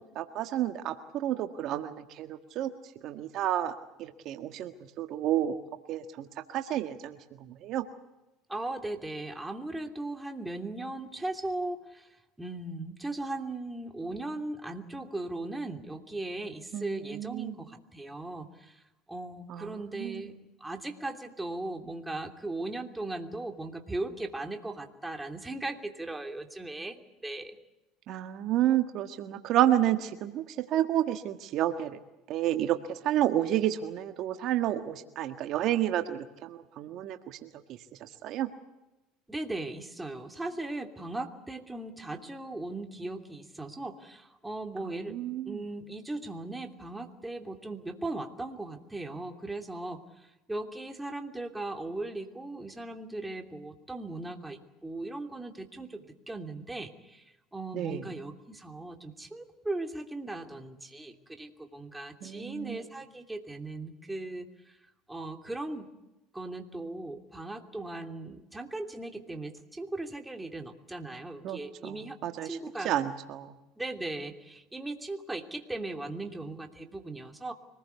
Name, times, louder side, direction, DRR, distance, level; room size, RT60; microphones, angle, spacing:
voice 1, 0.1-2.7 3.0-3.7 4.0-4.7 5.0-5.5 5.9-7.2 7.6-7.8 16.7-17.5 19.5-19.7 20.0-20.2 28.1-30.4 30.7-32.0 32.3-32.8 33.0-37.5 38.0-38.5 45.1-45.6 57.7-58.0 62.2-62.8 71.4-72.0 72.2-72.5 72.8-73.5, right 12 dB, 60° right, 7 dB, 1.6 m, -30 dB
voice 2, 8.5-12.1 12.4-18.8 19.1-20.3 20.6-27.6 39.3-50.0 50.5-57.2 57.5-64.5 65.1-65.9 66.3-72.2 72.4-72.9 73.8-77.5, right 2 dB, 10° right, 5 dB, 3.0 m, -38 dB
25.5 x 20.0 x 8.3 m, 0.96 s
supercardioid pair, 95°, 0 cm